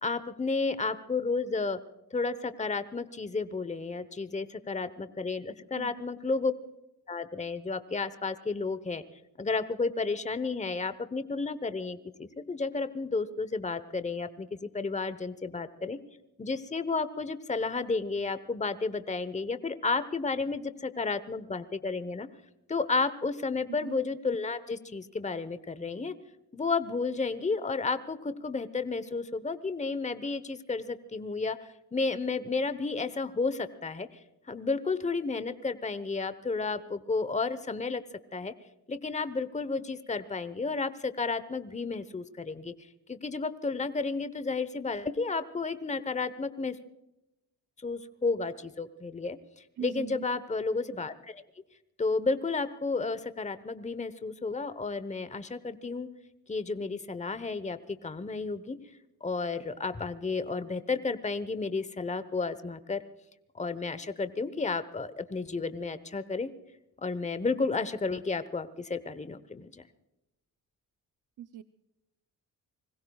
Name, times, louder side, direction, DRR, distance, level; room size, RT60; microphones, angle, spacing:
voice 1, 0.0-1.8 2.1-6.5 7.1-9.0 9.4-16.0 16.4-22.3 22.7-26.1 26.5-34.1 34.5-38.0 38.3-38.5 38.9-42.7 43.1-46.8 47.8-49.4 49.8-51.4 52.0-56.1 56.5-58.8 59.2-63.0 63.5-66.5 67.0-69.7, left 4 dB, 20° left, 13 dB, 1.0 m, -32 dB
voice 2, 23.7-24.0 49.8-50.3 71.4-71.6, right 11 dB, 55° right, 10 dB, 0.7 m, -41 dB
25.0 x 21.0 x 2.4 m, 0.93 s
supercardioid pair, 60°, 38 cm